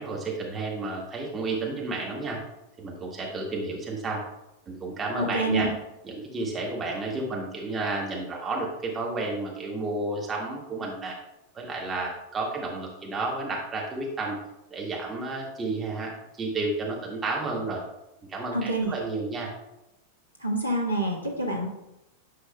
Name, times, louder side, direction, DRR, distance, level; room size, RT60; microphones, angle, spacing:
voice 1, 0.0-2.4 2.8-4.2 4.7-5.7 6.0-11.2 11.5-14.4 14.7-16.1 16.4-17.8 18.3-19.5, right 3 dB, 20° right, -2 dB, 1.8 m, -31 dB
voice 2, 5.2-5.7 18.5-18.9 20.4-21.7, right 2 dB, 85° right, -1 dB, 1.4 m, -26 dB
9.2 x 6.1 x 2.2 m, 0.91 s
figure-of-eight pair, 90°, 0 cm